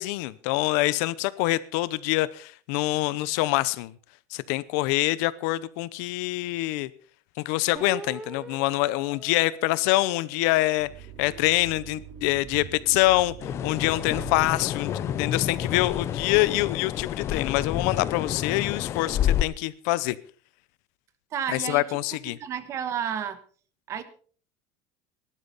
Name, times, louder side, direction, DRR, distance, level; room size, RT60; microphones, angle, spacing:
voice 1, 0.0-3.9 4.3-6.9 7.4-10.9 11.2-14.9 15.2-20.2 21.5-22.4, left 18 dB, 70° left, 18 dB, 0.7 m, -25 dB
sound 1, 7.8-10.4 11.0-13.5, right 1 dB, 10° right, 1.5 m, -45 dB
sound 2, 10.8-16.0, right 8 dB, 60° right, 2.6 m, -44 dB
sound 3, 13.4-19.4, left 10 dB, 30° left, 0.5 m, -29 dB
voice 2, 21.3-21.8 22.4-23.4 23.9-24.0, right 9 dB, 30° right, 12 dB, 1.3 m, -31 dB
18.5 x 12.0 x 4.1 m, 0.43 s
cardioid pair, 170°, 9 cm